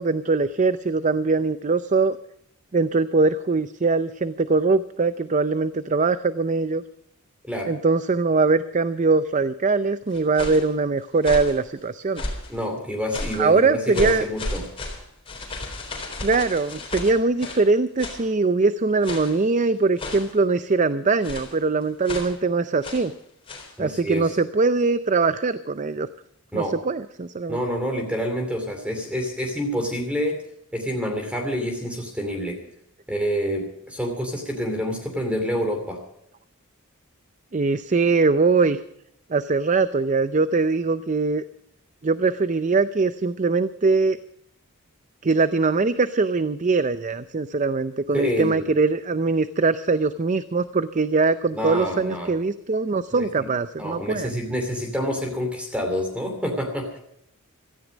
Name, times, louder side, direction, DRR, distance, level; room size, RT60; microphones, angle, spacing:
voice 1, 0.0-2.2 2.7-6.8 7.6-12.2 13.4-14.3 16.2-23.1 23.8-26.1 26.5-27.6 37.5-38.8 39.3-41.4 42.0-44.2 45.2-54.3, right 3 dB, 35° right, 13 dB, 0.5 m, -22 dB
sound 1, 10.1-10.7 11.2-11.6 12.1-12.6 13.1-13.5 13.9-17.7 18.0-18.3 19.0-19.4 20.0-20.4 21.2-21.6 22.0-22.4 22.8-23.1 23.5-23.7, left 2 dB, 25° left, 3.8 m, -33 dB
voice 2, 12.5-14.7 23.8-24.3 26.5-26.8 27.5-30.4 30.7-32.6 33.1-36.0 48.1-48.7 51.5-52.3 53.1-53.5 53.8-57.0, equal, 5° right, 3 dB, 2.6 m, -27 dB
17.0 x 14.0 x 5.1 m, 0.72 s
head